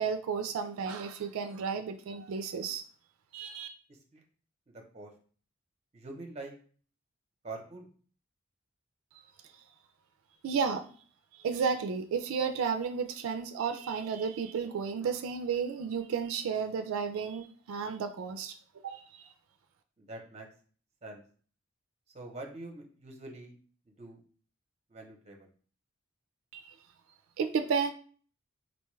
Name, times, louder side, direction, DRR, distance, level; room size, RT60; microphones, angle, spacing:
voice 1, 0.0-2.8 3.3-3.7 10.4-10.9 11.3-18.5 18.8-19.3 26.5-26.7 27.4-27.9, right 6 dB, 90° right, 7 dB, 0.3 m, -32 dB
voice 2, 4.7-5.1 5.9-6.5 7.4-7.9 20.0-20.5 21.0-21.2 22.1-23.5 24.0-24.2 24.9-25.5, right 2 dB, 30° right, 2 dB, 0.6 m, -44 dB
4.1 x 2.2 x 3.0 m, 0.43 s
head